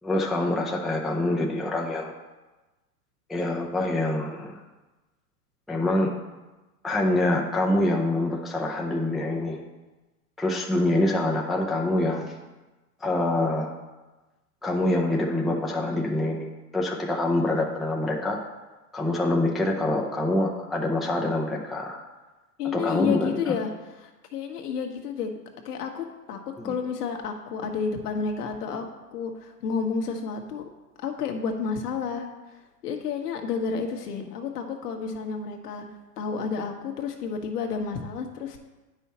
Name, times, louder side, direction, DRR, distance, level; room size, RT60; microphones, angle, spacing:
voice 1, 0.0-2.1 3.3-4.6 5.7-6.1 6.8-9.6 10.4-12.3 13.0-13.7 14.6-18.4 18.9-22.0 22.7-23.5 26.6-26.7, left 1 dB, ahead, -2 dB, 0.5 m, -25 dB
voice 2, 22.6-23.7 24.0-25.3 25.6-28.8 29.1-30.7 31.0-32.6 32.8-35.8 36.2-38.6, left 6 dB, 75° left, 4 dB, 1.4 m, -30 dB
9.0 x 5.6 x 4.2 m, 1.1 s
hypercardioid pair, 115°, 47 cm